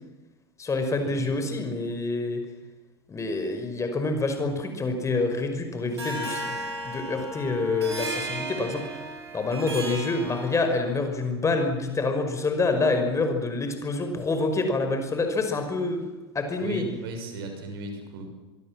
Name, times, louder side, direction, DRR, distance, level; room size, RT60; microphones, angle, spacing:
voice 1, 0.6-2.4 3.1-6.6 6.8-9.0 9.3-16.0 16.3-16.8, left 3 dB, 20° left, 6 dB, 5.2 m, -27 dB
Harp, 6.0-11.0, right 1 dB, 85° right, 7.1 m, -35 dB
voice 2, 16.6-18.3, right 2 dB, 65° right, 5 dB, 6.7 m, -36 dB
25.0 x 23.5 x 7.5 m, 1.1 s
figure-of-eight pair, 80°, 13 cm